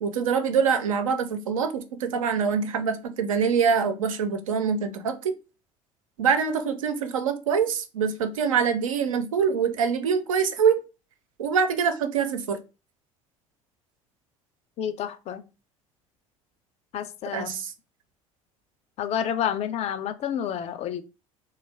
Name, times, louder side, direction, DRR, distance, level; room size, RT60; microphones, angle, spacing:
voice 1, 0.0-5.4 6.2-10.8 11.4-12.6 17.3-17.7, right 6 dB, 75° right, 0.4 m, -24 dB
voice 2, 14.8-15.4 16.9-17.6 19.0-21.0, left 9 dB, 40° left, 0.4 m, -29 dB
2.3 x 2.1 x 3.2 m
figure-of-eight pair, 60°, 17 cm